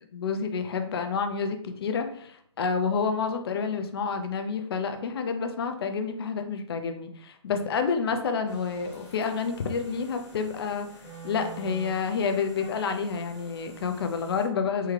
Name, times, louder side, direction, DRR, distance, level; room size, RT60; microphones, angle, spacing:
voice 1, 0.1-10.9 11.2-14.9, left 5 dB, 55° left, 7 dB, 0.5 m, -29 dB
sound 1, 8.5-14.5, right 3 dB, 10° left, 0.9 m, -47 dB
3.6 x 2.2 x 3.1 m, 0.65 s
hypercardioid pair, 150°, 16 cm